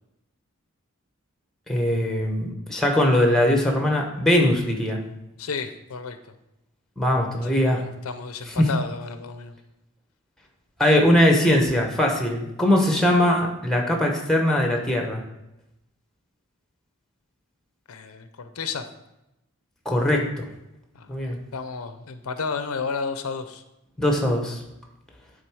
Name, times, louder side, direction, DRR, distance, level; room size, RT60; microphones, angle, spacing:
voice 1, 1.7-5.0 7.0-7.8 8.6-8.7 10.8-15.2 19.8-20.5 21.1-21.4 24.0-24.6, left 1 dB, ahead, 2 dB, 1.0 m, -21 dB
voice 2, 5.4-6.2 7.4-9.6 17.9-18.8 20.9-21.1 21.5-23.6, left 5 dB, 80° left, 9 dB, 0.6 m, -32 dB
9.0 x 3.8 x 4.8 m, 0.90 s
head